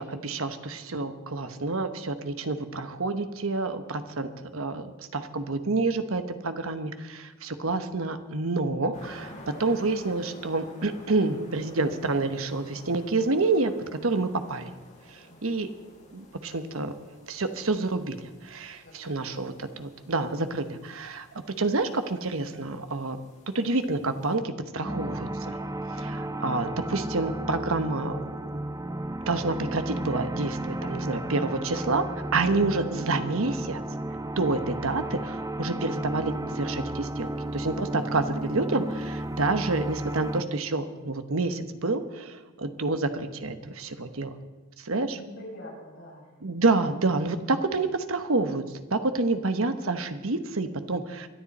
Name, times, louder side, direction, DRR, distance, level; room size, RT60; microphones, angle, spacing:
voice 1, 0.0-14.7 15.1-15.7 16.1-16.9 17.3-21.3 21.6-23.2 23.5-25.6 26.0-28.2 28.5-28.6 29.3-32.1 32.3-33.8 34.4-44.3 44.8-45.2 46.4-48.6 48.9-51.3, right 3 dB, 70° right, 9 dB, 1.1 m, -28 dB
sound 1, 8.9-24.3, left 1 dB, 35° left, 4.9 m, -51 dB
voice 2, 15.3-15.7 18.8-19.3 42.5-42.7 45.1-46.3, left 1 dB, 60° left, -4 dB, 6.9 m, -45 dB
sound 2, 24.8-40.4, right 1 dB, 15° right, 0.5 m, -33 dB
24.0 x 11.0 x 4.2 m, 1.2 s
head